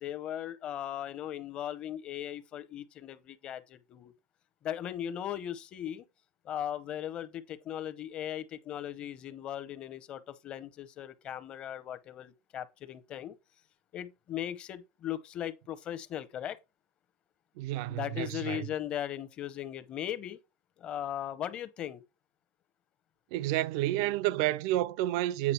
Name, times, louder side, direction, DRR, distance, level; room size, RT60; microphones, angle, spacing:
voice 1, 0.0-4.1 4.6-6.0 6.4-13.4 13.9-16.6 17.9-20.4 20.8-22.0, left 11 dB, 40° left, 0.8 m, -38 dB
voice 2, 17.6-18.7 23.3-25.5, right 15 dB, 70° right, 0.4 m, -30 dB
8.5 x 5.1 x 4.4 m
supercardioid pair, 130°, 3 cm